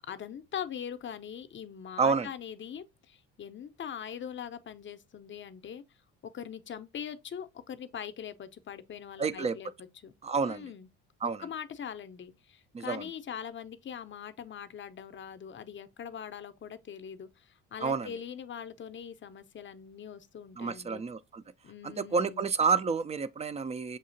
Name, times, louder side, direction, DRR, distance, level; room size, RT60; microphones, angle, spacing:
voice 1, 0.0-5.8 6.2-10.1 10.4-10.9 11.4-21.0 21.6-22.5, left 8 dB, 30° left, 0.6 m, -42 dB
voice 2, 2.0-2.3 9.2-9.6 10.2-10.7 11.2-11.4 12.7-13.0 17.8-18.1 20.6-21.4 21.8-24.0, right 5 dB, 20° right, 0.3 m, -29 dB
6.6 x 2.7 x 2.6 m
hypercardioid pair, 60°, 38 cm